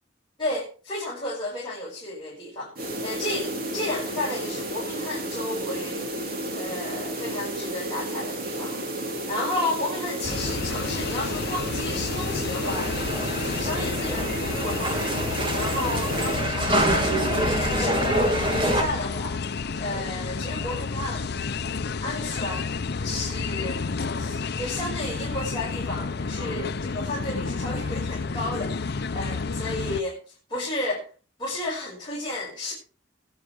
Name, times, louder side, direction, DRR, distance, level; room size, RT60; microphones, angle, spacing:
voice 1, 0.4-6.1 6.5-13.1 13.3-21.3 22.0-23.8 24.1-31.1 31.4-32.7, left 1 dB, 25° left, -6 dB, 5.2 m, -33 dB
sound 1, 2.7-16.5, right 1 dB, 55° right, 2.7 m, -32 dB
sound 2, 10.2-30.0, left 4 dB, 60° left, 0.7 m, -31 dB
sound 3, 12.6-18.8, right 1 dB, 30° right, 2.7 m, -26 dB
21.5 x 9.1 x 3.4 m, 0.37 s
head